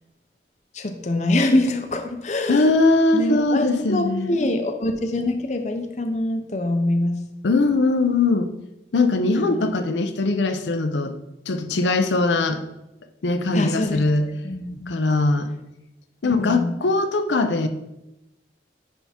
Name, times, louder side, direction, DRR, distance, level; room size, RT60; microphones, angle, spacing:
voice 1, 0.7-2.7 3.1-7.2 9.4-9.7 13.5-14.9 16.2-16.7, left 1 dB, 40° left, 6 dB, 0.6 m, -24 dB
voice 2, 2.5-4.4 7.4-8.5 8.9-11.2 11.5-12.6 13.2-14.3 14.9-15.5 16.2-17.7, left 3 dB, 85° left, 8 dB, 0.6 m, -21 dB
10.0 x 3.5 x 4.3 m, 0.93 s
head